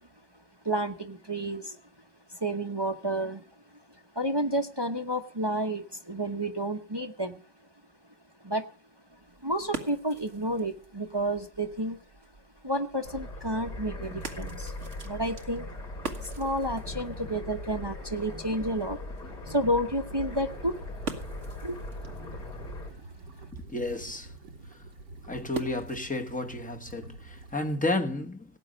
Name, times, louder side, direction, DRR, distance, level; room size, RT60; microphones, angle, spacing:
voice 1, 0.6-1.8 2.3-3.4 4.1-7.4 8.4-8.6 9.4-12.0 12.6-14.8 15.0-15.7 16.2-20.7 21.6-21.8, right 1 dB, 25° right, 0.6 m, -30 dB
sound 1, 9.1-26.3, right 4 dB, 45° right, 1.9 m, -46 dB
sound 2, 13.0-22.9, left 1 dB, 55° left, 5.1 m, -40 dB
sound 3, 20.3-27.8, right 2 dB, 70° right, 1.9 m, -48 dB
voice 2, 23.5-24.3 25.3-28.4, left 2 dB, 5° left, 1.0 m, -32 dB
18.0 x 8.6 x 5.2 m
omnidirectional pair, 1.9 m